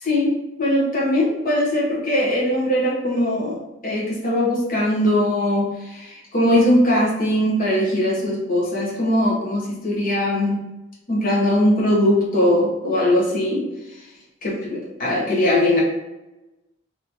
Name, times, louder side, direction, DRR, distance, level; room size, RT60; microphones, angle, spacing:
voice 1, 0.0-3.6 3.8-10.6 11.1-13.7 14.4-15.8, left 1 dB, 45° left, -5 dB, 1.1 m, -20 dB
3.2 x 2.8 x 3.9 m, 0.99 s
head